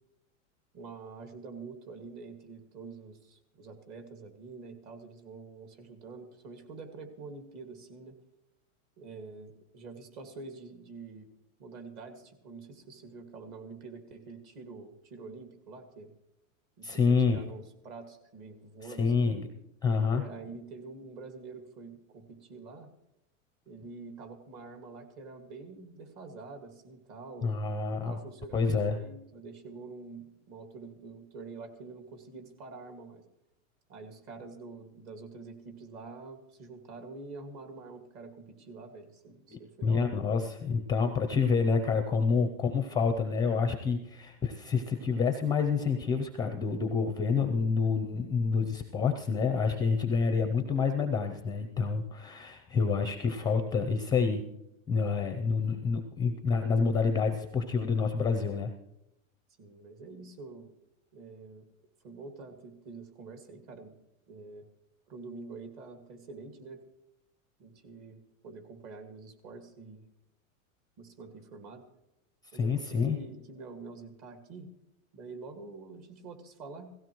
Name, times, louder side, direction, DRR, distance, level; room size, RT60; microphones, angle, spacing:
voice 1, 0.7-8.2 9.0-11.3 11.6-16.1 16.8-19.3 20.1-22.9 23.7-27.6 27.9-33.2 33.9-40.1 42.1-42.3 55.2-55.3 59.6-60.7 61.1-61.7 62.0-64.0 64.3-64.7 65.1-66.8 67.6-70.0 71.0-71.8 72.5-74.7 75.1-77.0, right 4 dB, 40° right, 5 dB, 2.1 m, -46 dB
voice 2, 16.8-17.4 19.0-19.5 19.8-20.2 27.4-28.2 28.5-29.0 39.5-54.4 54.9-58.7 72.5-73.2, left 5 dB, 10° left, 7 dB, 0.5 m, -28 dB
17.0 x 15.5 x 3.1 m, 0.85 s
supercardioid pair, 140°, 41 cm